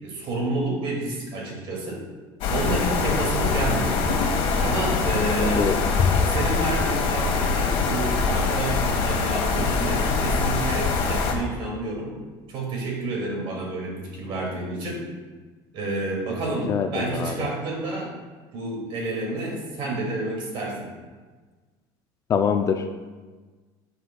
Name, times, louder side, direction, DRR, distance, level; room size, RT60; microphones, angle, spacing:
voice 1, 0.0-2.0 2.5-4.0 4.6-5.7 6.3-12.2 12.5-15.1 15.7-18.1 18.5-20.9, right 2 dB, 50° right, -1 dB, 2.3 m, -29 dB
sound 1, 2.4-11.3, left 4 dB, 60° left, 1.5 m, -23 dB
voice 2, 16.7-17.5 22.3-23.1, left 7 dB, 30° left, 6 dB, 0.4 m, -24 dB
10.5 x 6.9 x 2.3 m, 1.4 s
cardioid pair, 150°, 11 cm